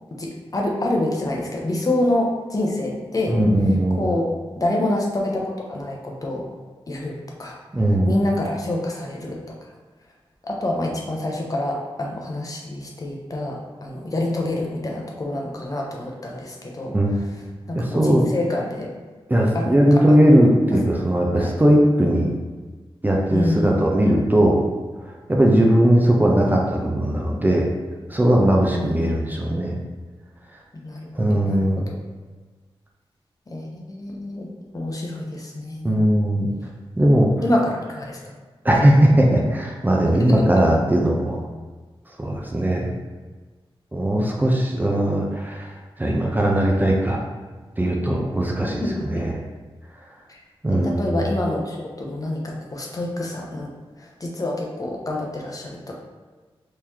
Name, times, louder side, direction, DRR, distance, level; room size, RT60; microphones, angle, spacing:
voice 1, 0.2-3.4 4.0-4.3 4.6-6.5 6.9-7.6 8.1-9.4 10.4-16.9 17.7-18.9 19.5-19.7 20.1-20.2 21.4-21.5 23.3-23.8 28.7-29.1 30.7-31.7 33.5-36.0 37.4-37.6 37.9-38.2 40.3-40.4 48.8-49.1 50.3-50.4 50.7-53.7 54.0-56.0, left 1 dB, 35° left, -1 dB, 0.7 m, -27 dB
voice 2, 3.3-4.0 7.7-8.1 16.9-17.1 17.7-18.2 19.3-22.3 23.0-24.6 25.0-27.7 28.1-29.7 31.1-31.9 35.8-36.5 37.0-37.3 38.6-41.4 42.2-42.9 43.9-47.3 47.8-48.8 49.1-49.3 50.6-51.2, right 1 dB, 20° right, -1 dB, 0.5 m, -19 dB
3.8 x 3.1 x 2.8 m, 1.3 s
wide cardioid pair, 80°, 10 cm